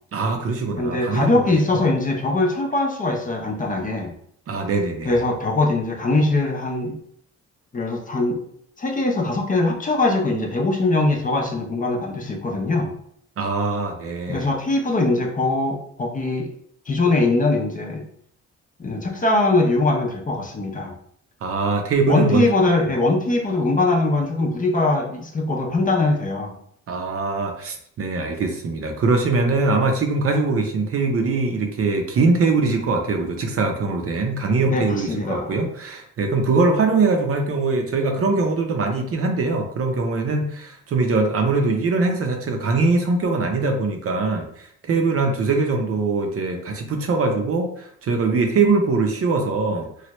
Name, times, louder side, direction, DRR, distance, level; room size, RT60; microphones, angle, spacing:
voice 1, 0.1-1.5 4.5-5.2 13.4-14.5 21.4-22.5 26.9-49.9, right 3 dB, 50° right, 3 dB, 0.6 m, -22 dB
voice 2, 0.8-4.1 5.0-7.0 7.7-8.4 8.8-12.9 14.3-16.5 16.9-18.0 18.8-20.9 22.1-26.5 34.6-35.5, left 2 dB, 25° left, 1 dB, 0.6 m, -21 dB
3.1 x 2.3 x 3.0 m, 0.66 s
cardioid pair, 90°, 30 cm